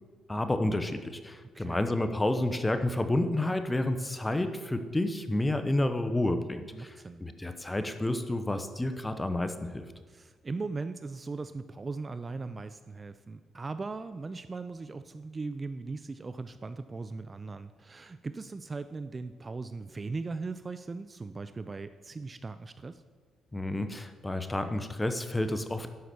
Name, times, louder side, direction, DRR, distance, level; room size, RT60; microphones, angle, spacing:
voice 1, 0.3-9.8 23.5-25.9, left 1 dB, 15° left, 9 dB, 0.9 m, -30 dB
voice 2, 1.5-1.9 6.7-7.2 10.1-23.0, right 3 dB, 30° right, 12 dB, 0.4 m, -39 dB
11.0 x 5.9 x 6.9 m, 1.5 s
cardioid pair, 90°, 0 cm